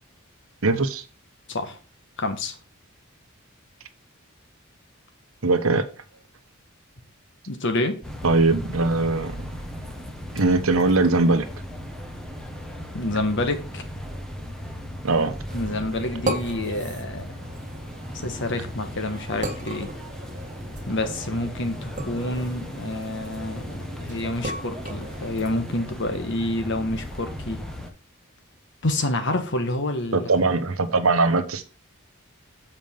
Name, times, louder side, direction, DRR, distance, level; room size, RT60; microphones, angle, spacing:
voice 1, 0.6-1.0 5.4-5.8 8.2-9.4 10.3-11.5 15.0-15.3 30.1-31.7, right 3 dB, 75° right, 1.1 m, -21 dB
voice 2, 1.5-1.8 2.2-2.6 7.5-8.0 12.9-13.8 15.5-17.4 18.1-19.9 20.9-27.6 28.8-30.5, left 2 dB, 60° left, 1.5 m, -28 dB
sound 1, 8.0-27.9, equal, 5° left, 1.1 m, -37 dB
sound 2, 15.5-25.9, right 1 dB, 35° right, 1.6 m, -36 dB
7.4 x 5.3 x 5.2 m
head